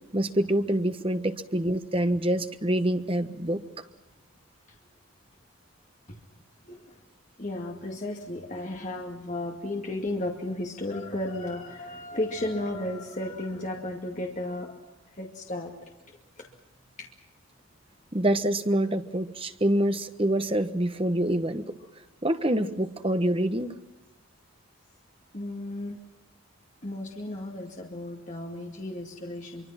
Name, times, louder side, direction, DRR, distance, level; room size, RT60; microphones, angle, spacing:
voice 1, 0.1-3.6 18.1-21.6 22.2-23.7, right 1 dB, 25° right, 9 dB, 1.3 m, -26 dB
voice 2, 7.4-14.7 15.2-16.5 17.0-17.1 25.3-26.0 26.8-29.7, left 1 dB, 35° left, 1 dB, 2.3 m, -34 dB
25.0 x 24.5 x 5.9 m, 1.1 s
head